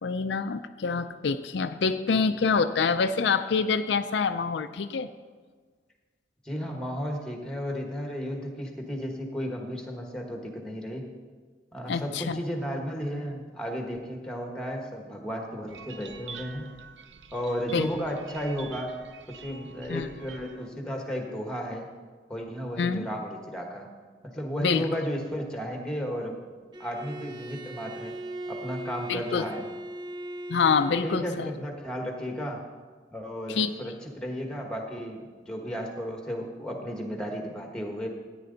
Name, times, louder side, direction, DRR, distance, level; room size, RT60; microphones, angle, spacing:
voice 1, 0.0-5.1 11.9-12.4 17.7-17.9 19.9-20.1 22.8-23.1 24.6-24.9 29.1-29.5 30.5-31.5 33.5-33.7, left 5 dB, 75° left, 9 dB, 0.4 m, -26 dB
voice 2, 6.4-11.1 11.7-16.7 17.3-18.9 19.3-21.9 22.3-23.9 24.2-26.4 26.8-28.2 28.5-29.6 31.0-32.6 33.1-38.1, equal, 5° left, 2 dB, 1.3 m, -34 dB
sound 1, 15.7-20.7, right 6 dB, 85° right, 0.5 m, -46 dB
Bowed string instrument, 26.7-31.6, right 1 dB, 25° right, 0.3 m, -39 dB
14.0 x 9.4 x 3.9 m, 1.5 s
head